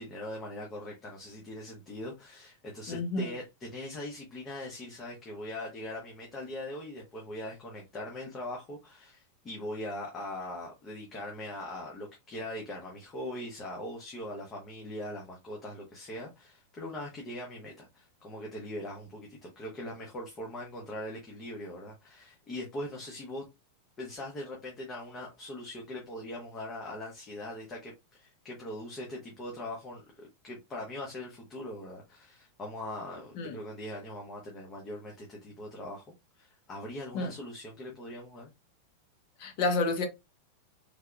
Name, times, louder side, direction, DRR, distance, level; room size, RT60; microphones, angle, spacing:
voice 1, 0.0-23.4 24.0-36.0 36.4-38.5, left 1 dB, 20° left, 0.9 m, -41 dB
voice 2, 2.9-3.3 33.4-33.5 37.1-37.3 39.4-40.1, left 3 dB, 50° left, 1.0 m, -29 dB
3.4 x 2.8 x 2.4 m
supercardioid pair, 155°, 0 cm